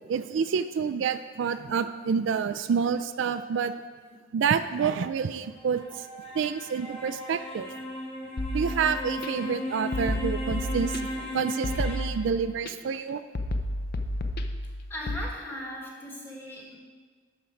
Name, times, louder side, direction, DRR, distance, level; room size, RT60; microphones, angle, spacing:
voice 1, 0.1-3.7 4.3-6.1 6.3-7.7 8.5-11.0 11.3-13.2, right 6 dB, 65° right, 10 dB, 0.3 m, -28 dB
sound 1, 5.4-12.0, left 1 dB, 30° left, 2.9 m, -36 dB
sound 2, 8.4-9.3 9.9-11.3 11.6-12.7 13.4-15.2, left 1 dB, 50° left, 0.5 m, -32 dB
voice 2, 14.9-16.8, left 1 dB, 10° left, -3 dB, 1.6 m, -38 dB
12.0 x 4.5 x 5.1 m, 1.5 s
head